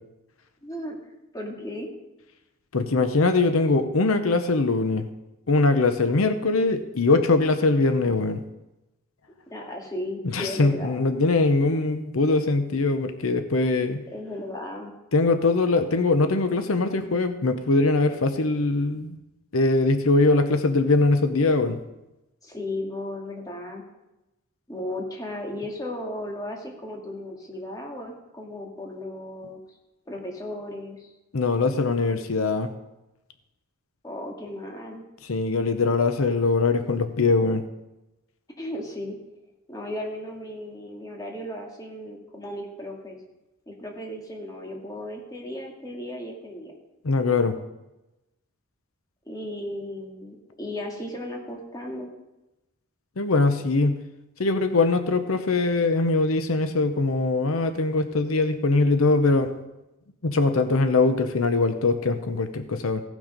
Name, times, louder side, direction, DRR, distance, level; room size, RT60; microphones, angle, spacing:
voice 1, 0.6-1.0 1.3-1.9 9.5-11.0 14.1-14.9 22.4-23.8 24.7-29.6 30.1-31.0 34.0-35.0 38.6-39.2 39.7-43.2 43.7-46.7 49.3-52.1, left 1 dB, 20° left, 0 dB, 2.0 m, -35 dB
voice 2, 2.7-5.0 5.5-8.4 10.3-14.0 15.1-19.2 19.5-21.8 31.3-32.7 35.2-37.6 47.0-47.5 53.2-54.0 54.4-59.5 60.2-63.0, left 3 dB, 90° left, 8 dB, 0.8 m, -22 dB
16.5 x 6.2 x 5.2 m, 0.97 s
head